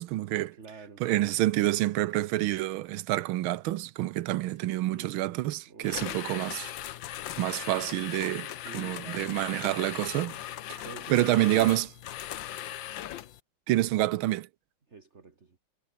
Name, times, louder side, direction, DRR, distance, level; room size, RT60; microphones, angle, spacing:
voice 1, 0.0-0.6 1.0-6.7 7.4-10.4 10.7-10.8 11.1-11.9 13.7-14.5, right 16 dB, 85° right, 1.5 m, -28 dB
voice 2, 0.5-1.3 4.4-6.5 8.4-9.3 10.8-11.9 14.9-15.6, right 4 dB, 35° right, 2.3 m, -48 dB
sound 1, 5.8-13.4, left 12 dB, 70° left, 1.5 m, -39 dB
omnidirectional pair, 2.2 m